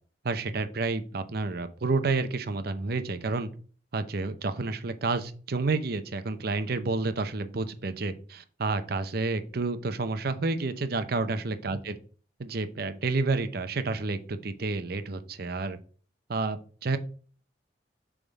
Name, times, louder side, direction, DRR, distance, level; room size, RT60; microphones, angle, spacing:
voice 1, 0.2-3.5 3.9-11.9 12.4-15.8 16.3-17.0, right 3 dB, 60° right, 10 dB, 0.7 m, -30 dB
7.1 x 3.6 x 4.1 m, 0.42 s
head